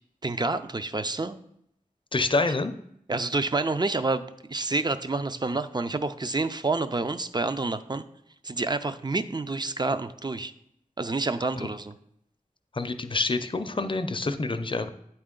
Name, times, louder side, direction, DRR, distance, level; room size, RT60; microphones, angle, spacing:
voice 1, 0.2-1.4 3.1-4.2 4.5-8.0 8.4-10.5 11.0-11.9, right 3 dB, 30° right, 11 dB, 0.4 m, -28 dB
voice 2, 2.1-2.7 11.6-11.7 12.7-14.9, left 3 dB, 35° left, 9 dB, 0.5 m, -27 dB
8.7 x 4.3 x 3.8 m, 0.74 s
wide cardioid pair, 60°, 14 cm